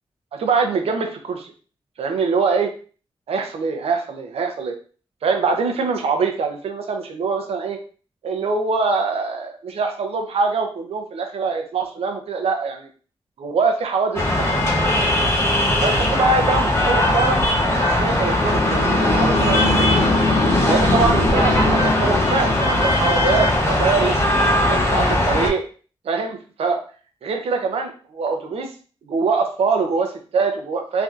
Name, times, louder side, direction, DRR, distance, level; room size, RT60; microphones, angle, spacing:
voice 1, 0.3-1.5 2.0-2.7 3.3-4.8 5.2-7.8 8.2-12.9 13.4-14.5 15.8-17.4 17.6-20.1 20.6-24.1 24.6-25.6 26.0-26.8 27.2-28.7 29.0-31.0, right 4 dB, 85° right, 4 dB, 0.6 m, -23 dB
sound 1, 14.1-25.5, left 1 dB, 25° left, 0.6 m, -19 dB
sound 2, 18.1-23.1, left 3 dB, 75° left, 0.5 m, -23 dB
3.3 x 2.6 x 2.4 m, 0.39 s
wide cardioid pair, 155°, 10 cm